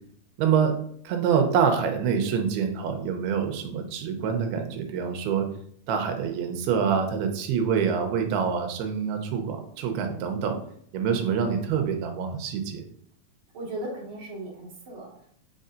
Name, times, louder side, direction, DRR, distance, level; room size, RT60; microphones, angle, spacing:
voice 1, 0.4-0.7 1.0-5.5 5.9-10.6 10.9-12.8, right 7 dB, 85° right, 5 dB, 2.8 m, -26 dB
voice 2, 13.5-15.3, right 1 dB, 45° right, -4 dB, 2.0 m, -37 dB
8.3 x 5.5 x 2.6 m, 0.65 s
omnidirectional pair, 4.5 m